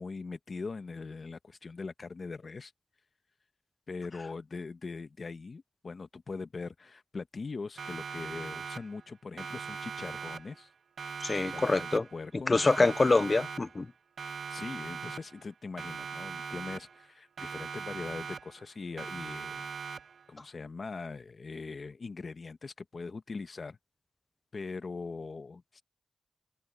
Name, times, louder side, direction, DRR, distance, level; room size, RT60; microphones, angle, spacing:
voice 1, 0.0-2.7 3.9-10.7 11.3-12.9 14.5-19.7 20.3-23.8 24.5-25.8, left 4 dB, 55° left, 1.1 m, -41 dB
Siren, 7.8-9.1 9.4-10.7 11.0-12.3 12.6-13.9 14.2-15.5 15.8-17.1 17.4-18.7 19.0-20.3, right 6 dB, 80° right, 0.3 m, -41 dB
voice 2, 11.2-12.0 12.5-13.9, left 3 dB, 40° left, 0.3 m, -25 dB
cardioid pair, 65°, 0 cm